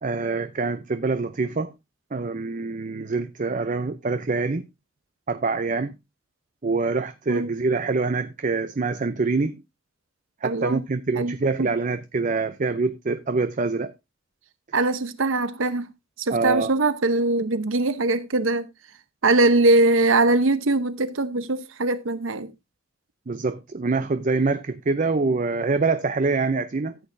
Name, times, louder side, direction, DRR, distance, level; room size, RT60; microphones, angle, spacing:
voice 1, 0.0-1.7 2.1-4.6 5.3-6.0 6.6-9.6 10.4-13.9 16.3-16.7 23.3-27.0, right 3 dB, 40° right, 0.5 m, -25 dB
voice 2, 10.4-10.8 11.1-11.7 14.7-15.9 16.2-18.7 19.2-22.5, right 2 dB, 85° right, 0.9 m, -22 dB
14.0 x 8.5 x 2.6 m
head